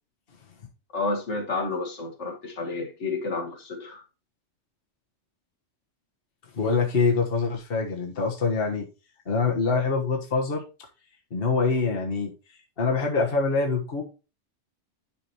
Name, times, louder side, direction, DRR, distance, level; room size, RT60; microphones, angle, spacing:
voice 1, 0.9-4.0, left 3 dB, 70° left, 2.1 m, -30 dB
voice 2, 6.5-8.9 9.2-10.6 11.3-12.3 12.8-14.0, left 4 dB, 50° left, 1.6 m, -24 dB
10.0 x 6.2 x 3.0 m
omnidirectional pair, 1.2 m